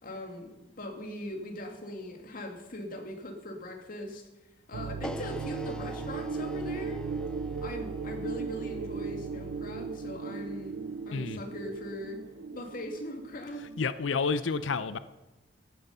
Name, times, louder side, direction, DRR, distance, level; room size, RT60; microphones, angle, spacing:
voice 1, 0.0-4.2 4.7-7.1 7.6-12.2 12.5-13.7, left 1 dB, 50° left, 2.3 m, -40 dB
sound 1, 4.7-13.9, right 5 dB, 70° right, 0.5 m, -37 dB
sound 2, 5.0-11.2, left 1 dB, 5° left, 0.4 m, -47 dB
voice 2, 11.1-11.4 13.8-15.0, left 4 dB, 85° left, 0.6 m, -29 dB
15.0 x 10.5 x 5.6 m
head